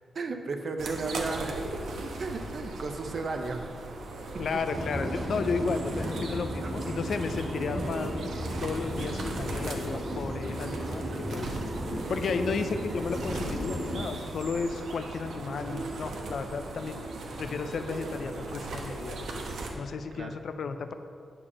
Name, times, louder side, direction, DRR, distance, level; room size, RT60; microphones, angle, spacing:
voice 1, 0.1-1.6 2.2-3.7 6.0-6.2 6.6-7.0 20.1-20.4, right 3 dB, 40° right, 6 dB, 0.6 m, -34 dB
sound 1, 0.8-19.7, right 2 dB, 85° right, 1.1 m, -38 dB
voice 2, 4.4-8.1 8.6-11.6 12.1-17.1 17.4-19.2 19.8-20.9, left 5 dB, 60° left, 8 dB, 0.4 m, -33 dB
sound 2, 4.7-14.1, equal, 15° right, 1.5 m, -35 dB
8.5 x 5.0 x 7.1 m, 2.4 s
wide cardioid pair, 175°, 0 cm